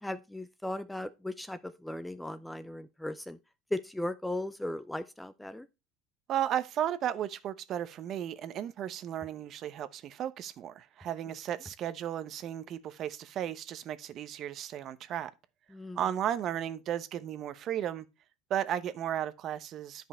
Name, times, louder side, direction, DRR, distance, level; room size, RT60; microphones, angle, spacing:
voice 1, 0.0-3.4 3.7-5.7 15.7-16.0, left 1 dB, 5° left, 0.5 m, -37 dB
voice 2, 6.3-15.3 16.0-18.1 18.5-20.1, right 10 dB, 45° right, 0.8 m, -34 dB
10.0 x 5.4 x 4.3 m
cardioid pair, 135°, 0 cm